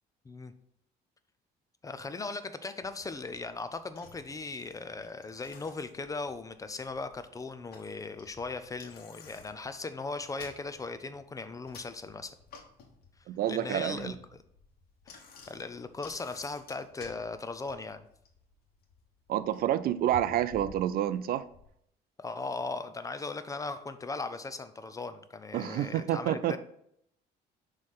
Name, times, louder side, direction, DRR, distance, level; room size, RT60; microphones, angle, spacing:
voice 1, 1.8-12.3 13.5-14.2 15.1-15.2 15.5-18.1 22.2-26.6, left 3 dB, 20° left, 11 dB, 0.5 m, -38 dB
Bicycle, 2.8-21.7, left 5 dB, 65° left, 1.3 m, -54 dB
voice 2, 13.3-14.1 19.3-21.4 25.5-26.6, right 11 dB, 60° right, 15 dB, 0.4 m, -29 dB
6.3 x 3.2 x 5.5 m, 0.72 s
cardioid pair, 110°, 17 cm